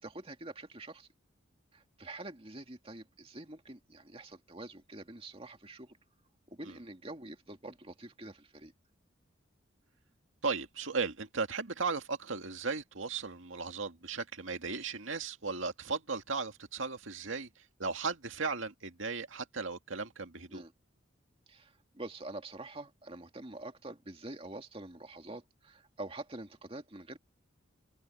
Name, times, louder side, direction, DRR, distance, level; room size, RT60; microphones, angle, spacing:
voice 1, 0.0-1.1 1.7-6.0 6.5-8.7 20.5-20.7 21.5-27.2, right 2 dB, 30° right, 2.3 m, -46 dB
voice 2, 10.4-20.6, right 4 dB, 90° right, 2.1 m, -36 dB
head